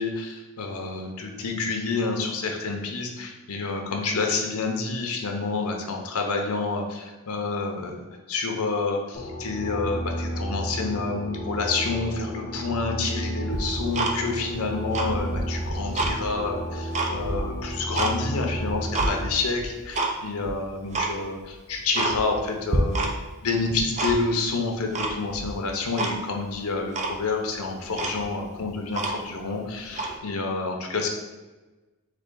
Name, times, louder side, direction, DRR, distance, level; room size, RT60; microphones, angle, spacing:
voice 1, 0.0-23.1 23.4-31.1, left 3 dB, 80° left, 2 dB, 0.8 m, -28 dB
sound 1, 9.1-19.2, equal, 40° left, 1.0 m, -32 dB
Tick-tock, 13.5-14.5 14.8-16.2 16.6-18.1 18.5-19.1 19.6-20.1 20.4-20.5 20.9-21.1 21.5-21.6 21.9-22.4 22.7-23.4 23.6-24.4 24.9-25.5 26.0-26.2 26.5-26.6 26.9-27.2 27.6-27.7 27.9-29.4 29.9-30.1, right 3 dB, 30° right, 0.5 m, -28 dB
3.8 x 3.4 x 3.8 m, 1.2 s
head